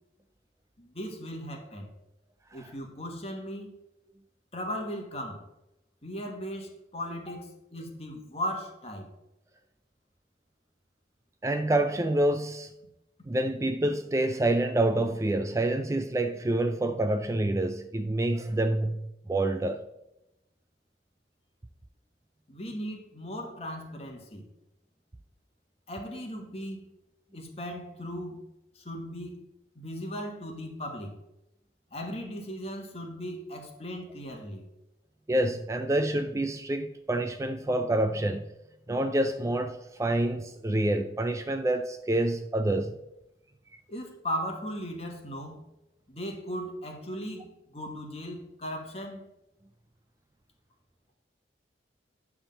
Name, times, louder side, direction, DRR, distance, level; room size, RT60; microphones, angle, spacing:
voice 1, 0.8-1.9 2.5-3.7 4.5-5.4 6.0-9.1 22.5-24.4 25.9-26.9 27.3-28.5 28.7-29.4 29.7-31.2 31.9-34.7 43.9-45.6 46.1-49.3, equal, 35° left, 2 dB, 1.4 m, -37 dB
voice 2, 11.4-12.7 13.3-19.8 35.3-38.4 38.9-43.0, right 1 dB, 15° right, 8 dB, 0.3 m, -27 dB
9.8 x 3.6 x 6.6 m, 0.90 s
head